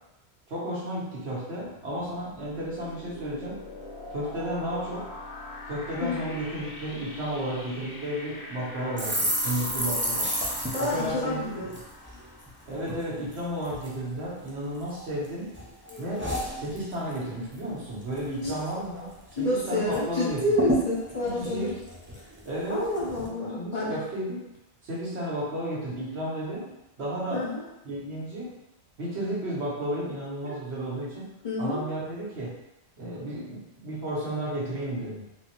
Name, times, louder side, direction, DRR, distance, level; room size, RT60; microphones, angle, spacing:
voice 1, 0.5-3.6 4.1-5.1 5.7-10.3 10.8-11.6 12.7-15.5 16.0-16.3 16.5-20.4 21.2-21.8 22.4-22.8 23.5-24.4 24.8-26.7 27.0-27.4 27.8-28.5 29.0-31.3 31.6-32.5 33.0-35.2, right 1 dB, 85° right, -6 dB, 1.3 m, -33 dB
sound 1, 1.6-13.3, left 1 dB, 80° left, 0.8 m, -43 dB
voice 2, 6.0-6.3 10.7-11.7 18.4-18.5 19.4-21.7 22.7-24.0 27.3-27.6 30.4-30.6 31.4-31.8, left 1 dB, 45° left, -5 dB, 0.8 m, -28 dB
sound 2, 9.0-12.5 12.8-13.0 13.3-13.9 14.5-15.3 15.5-17.2 17.5-17.8 18.0-18.6 19.0-19.1 19.3-20.0 20.3-20.4 20.6-22.5 22.9-23.3, equal, 20° right, 0.3 m, -31 dB
3.8 x 2.0 x 2.9 m, 0.92 s
omnidirectional pair, 1.1 m